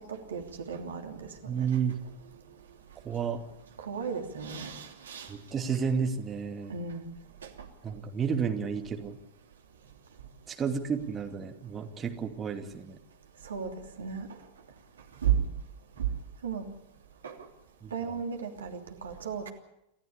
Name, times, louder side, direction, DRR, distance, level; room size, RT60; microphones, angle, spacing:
voice 1, 0.1-1.3 1.6-1.7 3.8-5.3 6.7-7.1 13.4-13.7 14.0-14.3 15.2-15.4 16.0-16.1 16.4-16.6 17.2-17.3 17.9-19.5, right 8 dB, 70° right, 3 dB, 3.0 m, -33 dB
voice 2, 1.5-2.0 3.0-3.4 5.3-6.7 7.8-9.2 10.5-13.0 17.8-18.1, right 6 dB, 20° right, 4 dB, 2.6 m, -31 dB
29.5 x 13.5 x 8.6 m, 0.86 s
figure-of-eight pair, 90°, 0 cm